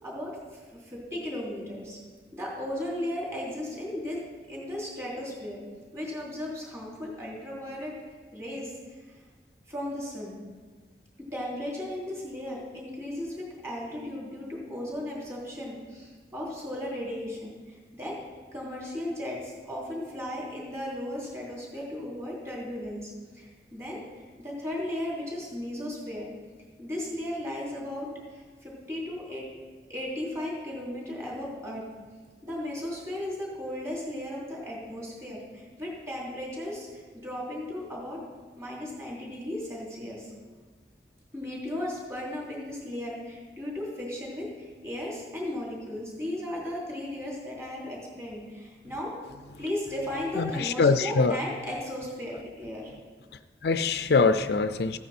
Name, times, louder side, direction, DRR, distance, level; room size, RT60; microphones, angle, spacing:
voice 1, 0.0-2.0 2.3-4.2 4.5-5.6 5.9-7.9 8.3-8.9 9.7-10.4 11.3-18.2 18.5-26.3 26.8-29.5 29.9-31.8 32.4-38.2 38.6-40.3 41.3-49.1 49.6-52.9, left 1 dB, 15° right, -4 dB, 3.1 m, -36 dB
voice 2, 50.4-51.4 53.6-55.0, left 4 dB, 65° left, 11 dB, 0.4 m, -23 dB
14.5 x 9.3 x 4.3 m, 1.4 s
head